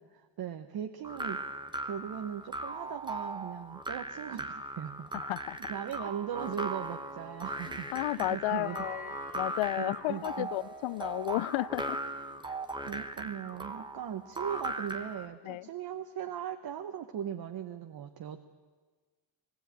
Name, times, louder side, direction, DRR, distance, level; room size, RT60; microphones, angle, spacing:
voice 1, 0.0-1.4 1.8-5.2 5.7-8.8 9.8-10.5 12.8-18.4, right 9 dB, 50° right, 6 dB, 0.9 m, -39 dB
sound 1, 1.0-15.3, right 2 dB, 10° right, 0.8 m, -39 dB
voice 2, 5.1-5.6 7.9-12.0 15.4-15.7, left 17 dB, 80° left, 20 dB, 0.5 m, -33 dB
sound 2, 6.8-13.2, left 4 dB, 15° left, 1.0 m, -53 dB
19.5 x 16.5 x 8.9 m, 1.4 s
cardioid pair, 155°, 47 cm